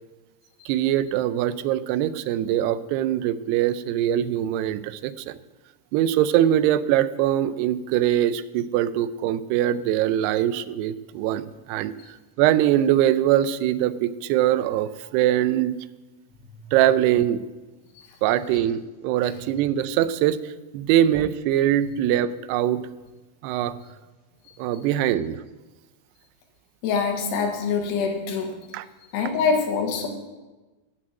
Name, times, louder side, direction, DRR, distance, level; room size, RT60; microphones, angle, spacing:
voice 1, 0.7-5.4 5.9-11.9 12.4-15.8 16.7-17.4 18.2-22.8 23.4-23.8 24.6-25.4 28.7-28.9, right 12 dB, 85° right, 14 dB, 2.6 m, -22 dB
voice 2, 26.8-28.6 29.1-30.1, left 5 dB, 85° left, 3 dB, 3.5 m, -24 dB
12.5 x 6.3 x 8.8 m, 1.2 s
omnidirectional pair, 4.7 m